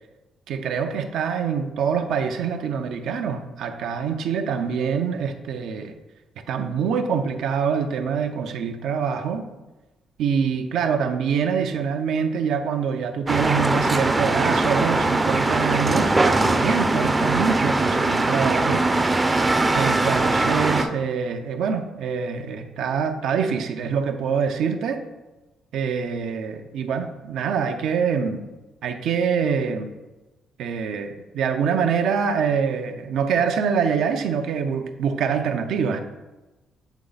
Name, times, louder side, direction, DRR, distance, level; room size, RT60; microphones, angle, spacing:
voice 1, 0.5-5.9 6.5-9.4 10.2-18.9 19.7-25.0 25.7-28.5 28.8-29.9 30.6-36.0, right 6 dB, 80° right, 6 dB, 0.6 m, -25 dB
sound 1, 13.3-20.9, right 2 dB, 20° right, 0.5 m, -21 dB
8.2 x 3.2 x 3.9 m, 1.1 s
cardioid pair, 90°, 0 cm